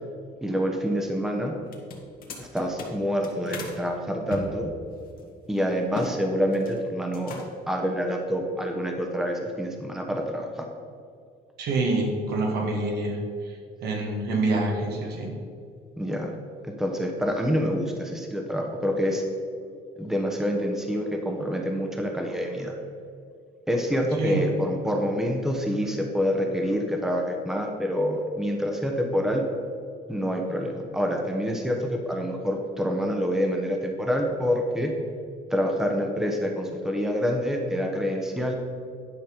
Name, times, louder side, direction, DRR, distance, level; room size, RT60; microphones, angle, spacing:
voice 1, 0.4-1.5 2.4-4.7 5.5-7.4 7.7-10.7 16.0-16.3 16.8-19.2 20.0-22.7 23.7-29.4 30.1-34.9 35.5-38.5, equal, 5° right, 2 dB, 1.0 m, -27 dB
sound 1, 1.6-3.8 4.3-6.1 6.4-6.8 7.1-7.7, left 3 dB, 60° left, 1.6 m, -38 dB
voice 2, 11.6-15.4 24.2-24.5, right 2 dB, 75° right, 0 dB, 1.9 m, -27 dB
10.5 x 5.3 x 5.2 m, 2.3 s
cardioid pair, 110°, 17 cm